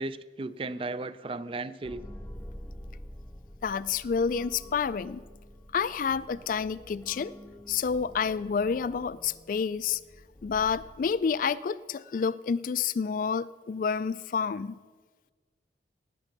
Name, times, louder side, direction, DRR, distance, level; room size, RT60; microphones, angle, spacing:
voice 1, 0.0-2.0, right 3 dB, 30° right, 16 dB, 0.4 m, -35 dB
sound 1, 1.8-11.5, equal, 10° left, 0.7 m, -47 dB
voice 2, 3.6-5.2 5.7-7.3 7.7-10.0 10.4-14.8, left 6 dB, 45° left, 18 dB, 0.3 m, -29 dB
18.5 x 7.7 x 5.9 m, 1.5 s
head